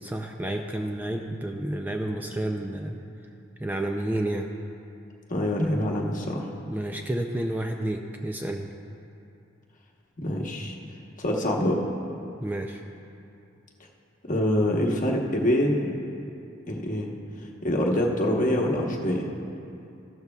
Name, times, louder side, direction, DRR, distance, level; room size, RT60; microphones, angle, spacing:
voice 1, 0.0-3.0 3.6-4.5 6.7-8.7 12.4-12.8, right 1 dB, 10° right, 3 dB, 0.4 m, -30 dB
voice 2, 5.3-6.5 10.2-10.7 11.2-11.8 14.2-15.9 16.7-17.1 17.4-19.3, left 1 dB, 40° left, 0 dB, 1.1 m, -25 dB
14.5 x 12.5 x 2.3 m, 2.7 s
head